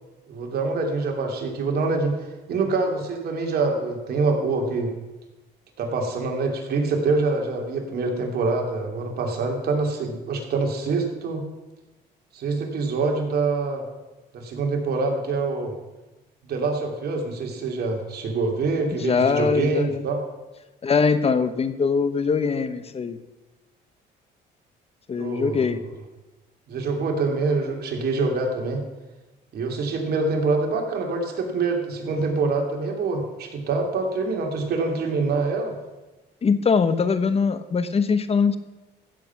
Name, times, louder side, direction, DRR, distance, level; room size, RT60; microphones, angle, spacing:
voice 1, 0.3-4.9 5.8-11.4 12.3-13.8 14.3-15.7 16.4-20.2 25.2-25.7 26.7-28.8 29.5-35.7, right 3 dB, 60° right, 2 dB, 2.9 m, -25 dB
voice 2, 19.0-20.0 20.8-23.2 25.1-25.8 36.4-38.6, left 5 dB, 35° left, 12 dB, 1.0 m, -22 dB
15.5 x 7.7 x 5.9 m, 1.1 s
cardioid pair, 100°, 18 cm